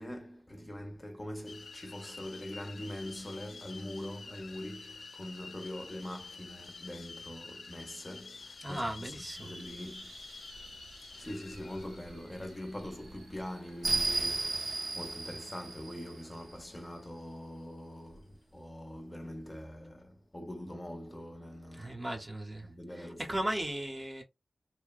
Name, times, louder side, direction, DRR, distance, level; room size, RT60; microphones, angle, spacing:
voice 1, 0.0-10.2 11.1-21.9 22.6-23.2, left 1 dB, 25° left, 0.6 m, -43 dB
sound 1, 1.5-15.1, left 4 dB, 90° left, 0.4 m, -50 dB
voice 2, 8.6-9.5 21.7-22.7 22.9-24.2, right 1 dB, 25° right, 0.7 m, -36 dB
sound 2, 9.2-16.7, right 3 dB, 75° right, 0.5 m, -37 dB
2.7 x 2.0 x 2.3 m
wide cardioid pair, 90°, 0 cm